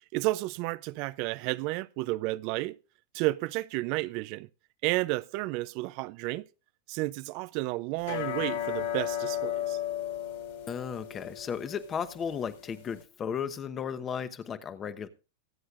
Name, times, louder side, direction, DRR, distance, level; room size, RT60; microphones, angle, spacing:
voice 1, 0.1-2.8 3.1-4.5 4.8-6.4 6.9-9.8, right 20 dB, 50° right, 0.4 m, -31 dB
sound 1, 8.0-13.0, left 11 dB, 70° left, 2.6 m, -35 dB
voice 2, 10.7-15.1, left 7 dB, 25° left, 1.0 m, -35 dB
23.0 x 7.9 x 2.4 m
hypercardioid pair, 120°, 0 cm